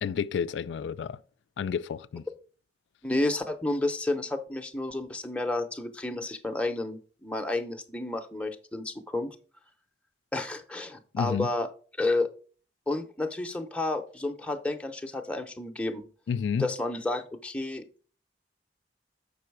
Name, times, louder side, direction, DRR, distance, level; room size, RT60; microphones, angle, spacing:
voice 1, 0.0-1.2 1.6-2.2 11.1-11.5 16.3-16.7, left 7 dB, 75° left, 0.3 m, -30 dB
voice 2, 3.0-9.4 10.3-11.7 12.0-12.3 12.9-16.0 16.6-17.8, left 2 dB, 5° left, 0.6 m, -31 dB
7.5 x 5.4 x 4.6 m
head